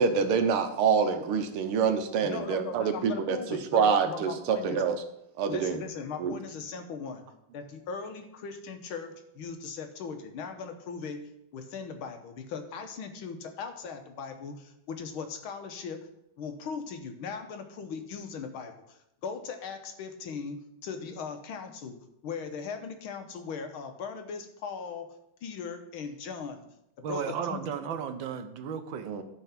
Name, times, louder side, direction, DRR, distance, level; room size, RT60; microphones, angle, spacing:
voice 1, 0.0-3.4 3.7-5.0 5.4-5.8 6.2-6.3 29.0-29.2, right 6 dB, 85° right, 7 dB, 1.8 m, -26 dB
voice 2, 2.2-4.8 5.5-7.2 7.5-16.0 16.4-25.1 25.4-26.6 27.1-27.6, left 5 dB, 75° left, 6 dB, 1.8 m, -39 dB
voice 3, 27.0-29.1, right 7 dB, 70° right, 9 dB, 1.4 m, -34 dB
12.5 x 4.6 x 5.8 m, 0.81 s
omnidirectional pair, 2.4 m